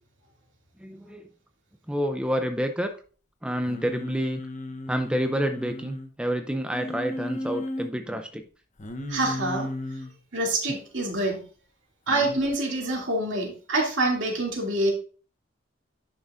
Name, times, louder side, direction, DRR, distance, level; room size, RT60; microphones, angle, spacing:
voice 1, 0.8-1.3 1.9-3.0 3.4-4.4 4.9-8.4, equal, 5° right, 6 dB, 0.4 m, -28 dB
Singing, 3.7-6.1 6.7-7.9 8.8-10.1 12.1-12.4, left 1 dB, 35° left, 0.9 m, -35 dB
voice 2, 9.1-9.7 10.3-11.4 12.1-14.9, right 2 dB, 60° right, -1 dB, 2.6 m, -26 dB
10.5 x 6.4 x 2.5 m, 0.39 s
head